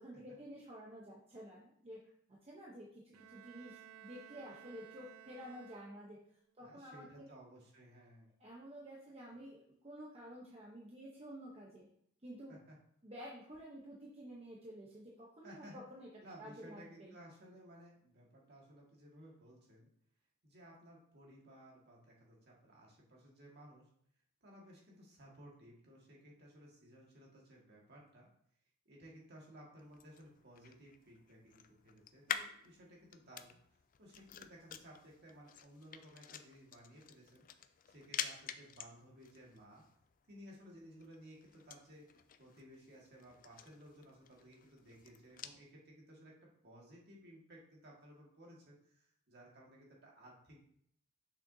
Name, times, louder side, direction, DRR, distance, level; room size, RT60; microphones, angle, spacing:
voice 1, 0.0-2.0 2.3-6.2 6.6-7.3 8.4-11.9 12.2-12.6 13.0-16.1 16.4-17.1, equal, 25° right, -4 dB, 0.9 m, -51 dB
Bowed string instrument, 3.1-6.4, right 10 dB, 75° right, 0.5 m, -57 dB
voice 2, 6.6-8.3 12.5-12.8 15.4-15.8 16.2-19.9 20.4-23.9 24.4-28.3 28.9-33.6 34.0-37.5 37.9-39.8 40.3-46.3 46.6-50.6, equal, 50° right, -3 dB, 1.9 m, -57 dB
sound 1, 29.8-45.6, left 8 dB, 40° left, 0.4 m, -49 dB
6.7 x 6.3 x 2.8 m, 0.68 s
head